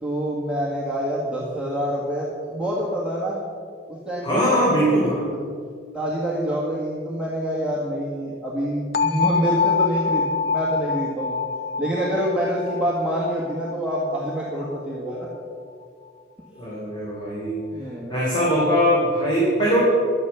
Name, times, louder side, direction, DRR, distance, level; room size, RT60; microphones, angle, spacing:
voice 1, 0.0-3.4 3.9-4.7 5.3-5.5 5.9-11.4 11.8-15.3 17.7-18.1, equal, 5° right, -6 dB, 1.7 m, -26 dB
voice 2, 4.2-5.3 16.5-17.7 18.1-19.8, equal, 25° left, -7 dB, 3.3 m, -21 dB
sound 1, 8.9-14.8, left 5 dB, 55° left, 0.8 m, -25 dB
12.5 x 9.6 x 6.9 m, 2.2 s
head